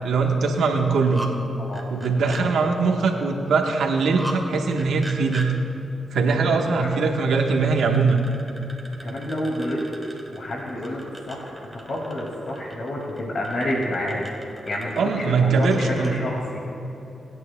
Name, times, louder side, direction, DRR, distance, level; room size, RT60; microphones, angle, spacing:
voice 1, 0.0-1.2 1.9-5.5 6.1-8.2 15.0-16.2, right 4 dB, 85° right, 2 dB, 1.2 m, -21 dB
sound 1, 0.8-1.3 1.7-2.4 4.0-4.4 4.7-5.5 6.9-16.2, right 1 dB, 10° right, 2.0 m, -39 dB
voice 2, 6.3-7.0 9.0-9.8 10.3-11.0 11.3-11.5 11.9-16.6, left 1 dB, 60° left, -2 dB, 2.1 m, -29 dB
24.0 x 9.3 x 2.2 m, 2.9 s
cardioid pair, 50°, 0 cm